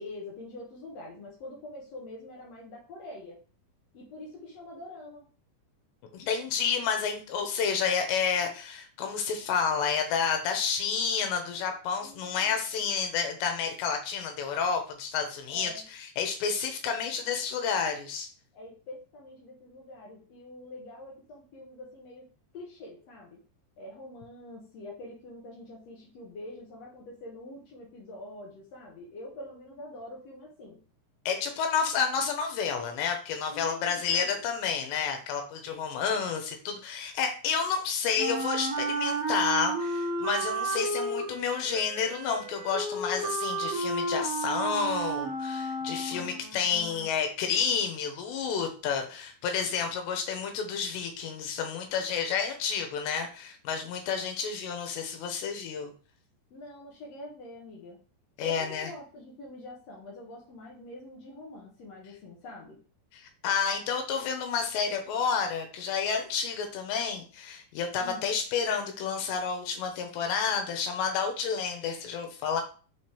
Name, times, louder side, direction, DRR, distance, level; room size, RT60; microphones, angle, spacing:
voice 1, 0.0-3.4 3.9-5.2 12.0-12.9 15.5-15.9 18.5-23.4 23.8-30.8 33.4-34.4 46.1-47.1 56.5-58.0 58.4-62.8 68.0-68.3, left 1 dB, 65° left, -4 dB, 1.6 m, -45 dB
voice 2, 6.1-15.7 16.2-18.3 31.3-55.9 58.4-58.9 63.1-72.6, left 6 dB, 90° left, 5 dB, 3.2 m, -30 dB
Wind instrument woodwind instrument, 38.2-46.5, right 2 dB, 55° right, 2.4 m, -32 dB
6.5 x 4.5 x 3.3 m, 0.38 s
omnidirectional pair, 4.9 m